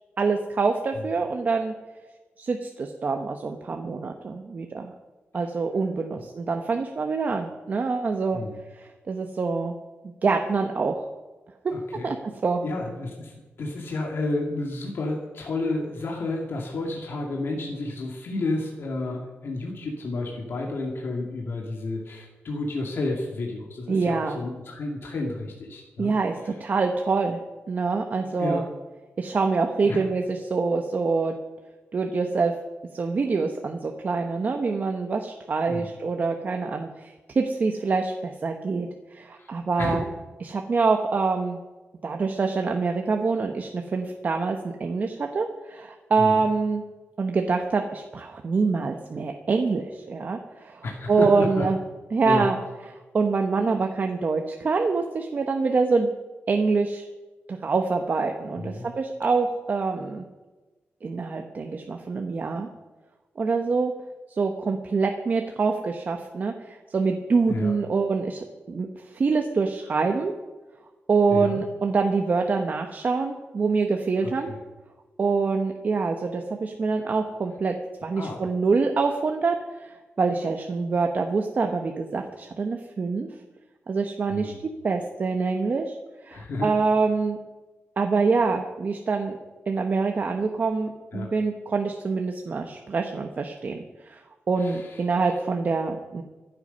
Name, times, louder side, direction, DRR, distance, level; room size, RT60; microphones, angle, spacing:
voice 1, 0.2-1.7 2.4-4.9 5.3-8.4 8.7-9.8 10.0-10.9 12.0-12.2 12.4-12.6 23.9-24.4 26.0-27.4 27.7-28.7 29.2-31.3 31.9-32.5 32.9-40.0 40.4-41.6 42.0-46.8 47.2-51.8 52.1-52.6 53.1-56.1 56.5-57.1 57.5-60.3 61.0-62.7 63.4-63.9 64.4-68.9 69.1-70.3 71.1-74.5 75.2-77.7 78.0-83.3 83.9-84.5 84.8-86.0 86.2-87.4 88.0-89.4 89.7-94.2 94.5-96.2, right 4 dB, 40° right, 4 dB, 0.9 m, -25 dB
voice 2, 11.7-12.1 12.6-26.1 28.2-28.6 29.8-30.1 35.7-35.9 39.4-39.5 39.8-40.0 46.2-46.4 50.8-51.7 52.2-52.5 58.5-58.9 67.5-67.7 71.3-71.6 74.2-74.6 78.2-78.5 84.3-84.6 86.3-86.7 91.1-91.3 94.6-95.1, left 2 dB, 60° left, 0 dB, 2.3 m, -31 dB
24.0 x 8.1 x 5.5 m, 1.2 s
wide cardioid pair, 170°, 4 cm